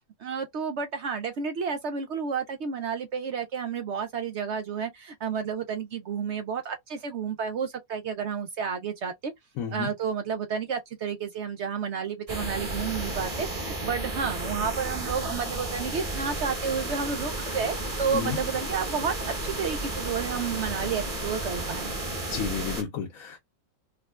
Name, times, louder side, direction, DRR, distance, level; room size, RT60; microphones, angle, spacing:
voice 1, 0.2-9.3 9.7-21.9, right 6 dB, 65° right, 0.8 m, -31 dB
voice 2, 9.6-9.9 18.1-18.4 22.3-23.4, left 7 dB, 85° left, 1.3 m, -31 dB
sound 1, 12.3-22.8, right 2 dB, 25° right, 1.2 m, -33 dB
4.8 x 2.3 x 2.3 m
omnidirectional pair, 1.4 m